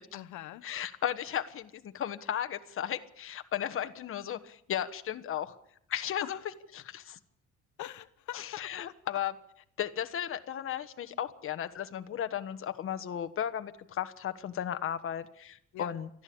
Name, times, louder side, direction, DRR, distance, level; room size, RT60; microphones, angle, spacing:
voice 1, 0.1-0.6 6.2-6.4 7.8-8.9 15.7-15.9, left 14 dB, 85° left, 10 dB, 1.1 m, -43 dB
voice 2, 0.6-5.5 5.9-6.4 6.7-7.2 8.3-9.3 9.8-16.1, left 10 dB, 45° left, 8 dB, 1.4 m, -35 dB
23.5 x 14.5 x 8.7 m, 0.69 s
cardioid pair, 160°, 29 cm